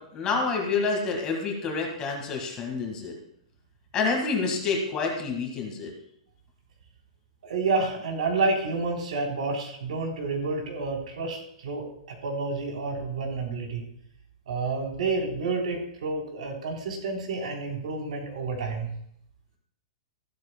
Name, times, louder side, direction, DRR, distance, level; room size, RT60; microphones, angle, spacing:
voice 1, 0.0-3.1 3.9-5.9, left 4 dB, 20° left, 1 dB, 1.7 m, -28 dB
voice 2, 7.4-13.9 14.5-18.9, right 3 dB, 85° right, 1 dB, 3.4 m, -29 dB
14.5 x 12.5 x 2.2 m, 0.71 s
supercardioid pair, 175°, 4 cm